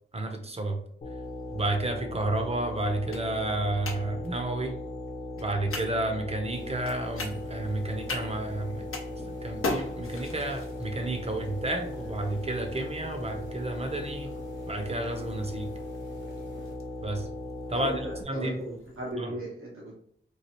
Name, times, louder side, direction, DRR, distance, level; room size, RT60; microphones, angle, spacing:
voice 1, 0.1-0.8 1.5-4.8 5.4-8.8 9.4-14.3 14.7-15.7 17.0-17.3 17.7-18.0 18.2-18.6 19.2-19.3, right 2 dB, 30° right, 4 dB, 0.6 m, -31 dB
sound 1, 1.0-18.2, left 1 dB, 35° left, 0.5 m, -38 dB
sound 2, 1.2-19.1, left 2 dB, 80° left, 0.6 m, -43 dB
sound 3, 6.5-16.7, equal, 60° right, 0.9 m, -51 dB
voice 2, 17.8-19.9, right 1 dB, 90° right, -5 dB, 1.0 m, -36 dB
3.1 x 2.3 x 2.8 m, 0.64 s
wide cardioid pair, 60°, 21 cm